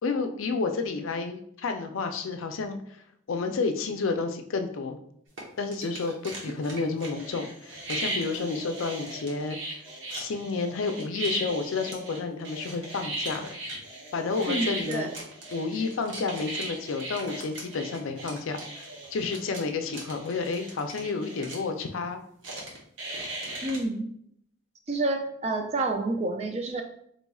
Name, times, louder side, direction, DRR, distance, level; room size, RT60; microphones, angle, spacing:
voice 1, 0.0-2.8 3.3-5.0 5.6-9.6 10.1-13.6 14.1-15.1 15.5-22.2, left 4 dB, 80° left, 6 dB, 0.4 m, -30 dB
sound 1, 5.4-5.5 5.7-21.6 22.4-23.8, right 1 dB, 65° right, 1.0 m, -37 dB
voice 2, 14.5-15.1 23.6-24.1 24.9-26.8, right 2 dB, 30° right, 4 dB, 0.4 m, -29 dB
4.1 x 3.0 x 2.3 m, 0.70 s
head